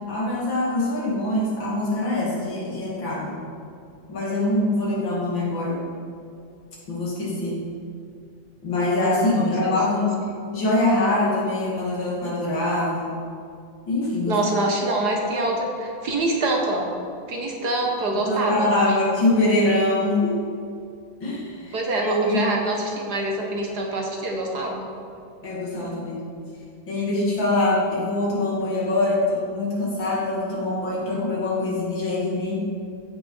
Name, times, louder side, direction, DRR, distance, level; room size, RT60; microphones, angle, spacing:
voice 1, 0.1-3.3 4.1-5.8 6.9-7.6 8.6-10.2 10.5-13.1 13.9-14.4 18.1-20.4 21.2-22.5 25.4-26.2 26.9-32.7, left 2 dB, 75° left, -5 dB, 3.3 m, -23 dB
voice 2, 9.4-9.7 14.3-16.9 17.3-19.0 21.7-24.9, right 2 dB, 55° right, 0 dB, 1.9 m, -25 dB
14.5 x 6.3 x 5.6 m, 2.4 s
omnidirectional pair, 2.1 m